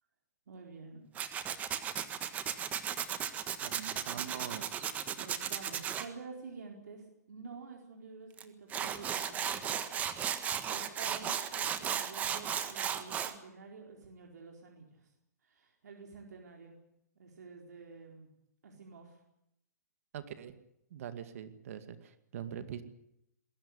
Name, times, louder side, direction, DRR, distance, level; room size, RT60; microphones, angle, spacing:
voice 1, 0.5-1.1 4.9-10.0 10.3-15.1 15.4-16.8 17.2-18.3 18.6-19.2, right 4 dB, 80° right, 1 dB, 4.5 m, -50 dB
Tools, 1.2-6.1 8.4-8.5 8.7-13.3, right 8 dB, 15° right, 1.5 m, -35 dB
voice 2, 3.6-4.8 20.1-20.5 20.9-22.8, right 9 dB, 55° right, 10 dB, 2.2 m, -43 dB
21.5 x 17.0 x 9.8 m, 0.81 s
hypercardioid pair, 150°, 9 cm